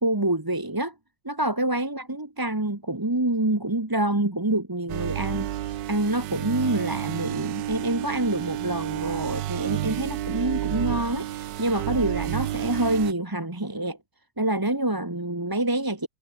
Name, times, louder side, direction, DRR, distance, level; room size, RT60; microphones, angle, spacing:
voice 1, 0.0-0.9 1.2-5.5 5.9-14.0 14.4-16.1, right 1 dB, 10° right, 1.5 m, -26 dB
sound 1, 4.9-13.1, right 13 dB, 75° right, 1.4 m, -30 dB
omnidirectional pair, 2.0 m